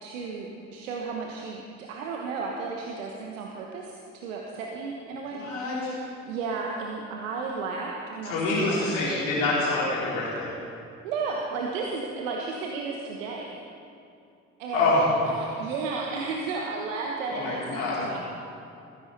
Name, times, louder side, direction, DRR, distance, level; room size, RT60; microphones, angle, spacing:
voice 1, 0.0-6.0 6.2-8.8 11.0-13.6 14.6-15.0 15.3-18.2, right 4 dB, 75° right, 0 dB, 1.2 m, -33 dB
voice 2, 5.3-6.0 8.2-10.5 14.7-15.0 17.3-18.1, left 2 dB, 70° left, -7 dB, 3.9 m, -26 dB
20.0 x 15.5 x 4.1 m, 2.6 s
figure-of-eight pair, 40°, 38 cm